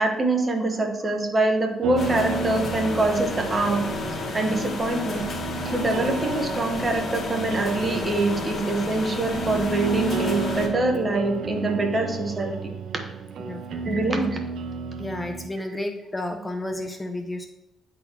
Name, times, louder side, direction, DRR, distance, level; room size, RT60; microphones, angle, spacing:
voice 1, 0.0-3.9 4.3-5.3 5.7-12.5 13.8-14.4, right 2 dB, 30° right, 3 dB, 1.1 m, -24 dB
sound 1, 1.8-15.5, right 5 dB, 75° right, 0.5 m, -32 dB
sound 2, 2.0-10.7, left 4 dB, 50° left, 1.2 m, -32 dB
voice 2, 13.4-13.9 15.0-17.5, left 1 dB, 15° left, 5 dB, 0.6 m, -32 dB
9.4 x 4.0 x 2.9 m, 0.91 s
cardioid pair, 90°, 0 cm